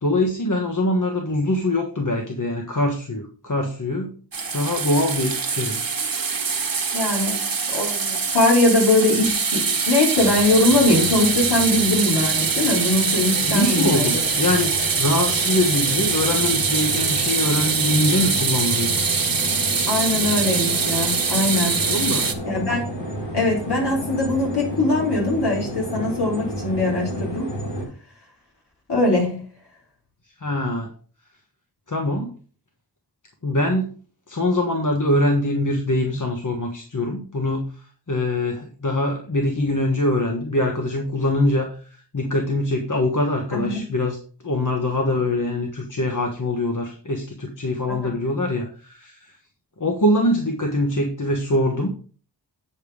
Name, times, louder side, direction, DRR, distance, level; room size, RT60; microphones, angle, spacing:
voice 1, 0.0-4.1 4.5-5.8 13.4-19.0 21.8-22.3 30.4-30.9 31.9-32.3 33.4-33.9 34.3-37.6 38.1-44.2 44.4-49.4 49.8-51.9, left 1 dB, 45° left, 3 dB, 1.4 m, -23 dB
sound 1, 4.3-22.3, right 5 dB, 55° right, 1.2 m, -23 dB
voice 2, 6.9-14.1 19.9-21.8 22.5-22.8 23.3-27.5 28.9-29.4 43.5-43.8 47.9-48.2, left 2 dB, 65° left, -2 dB, 4.1 m, -21 dB
sound 2, 10.1-27.9, equal, 85° left, 3.6 m, -32 dB
8.8 x 5.4 x 5.0 m, 0.39 s
wide cardioid pair, 50°, 42 cm